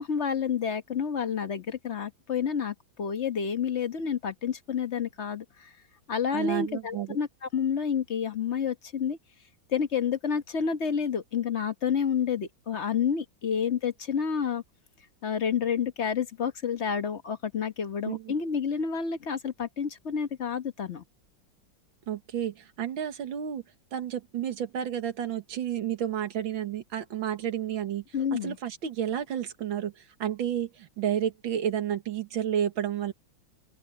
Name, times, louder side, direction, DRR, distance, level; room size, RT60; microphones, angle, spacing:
voice 1, 0.0-5.7 6.1-9.2 9.7-14.6 15.2-21.0 28.1-28.6, left 7 dB, 40° left, 1.2 m, -29 dB
voice 2, 6.3-7.2 18.1-18.3 22.1-23.6 23.9-28.0 28.3-33.1, right 10 dB, 80° right, 2.2 m, -31 dB
open air
omnidirectional pair, 2.1 m